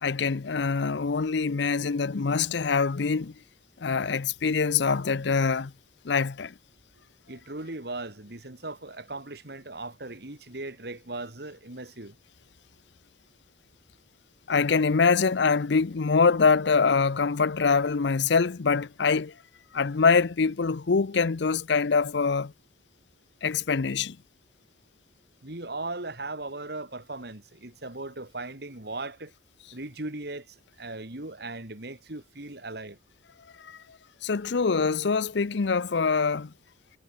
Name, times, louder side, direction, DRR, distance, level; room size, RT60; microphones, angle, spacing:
voice 1, 0.0-3.3 3.8-5.7 6.0-6.5 14.5-19.3 19.7-22.5 23.4-24.2 33.6-33.8 34.2-36.5, left 5 dB, 65° left, 0.6 m, -24 dB
voice 2, 7.3-12.2 25.4-29.3 29.7-33.0, right 2 dB, 55° right, 2.5 m, -38 dB
head